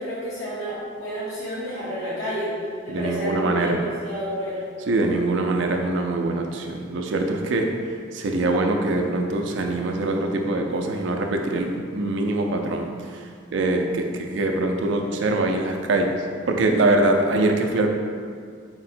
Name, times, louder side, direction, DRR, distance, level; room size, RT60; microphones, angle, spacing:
voice 1, 0.0-2.5 2.8-4.6, equal, 85° left, -9 dB, 1.1 m, -30 dB
voice 2, 2.9-3.8 4.9-7.7 8.1-16.1 16.5-17.9, right 2 dB, 65° right, 3 dB, 0.4 m, -23 dB
4.5 x 2.1 x 4.2 m, 2.1 s
head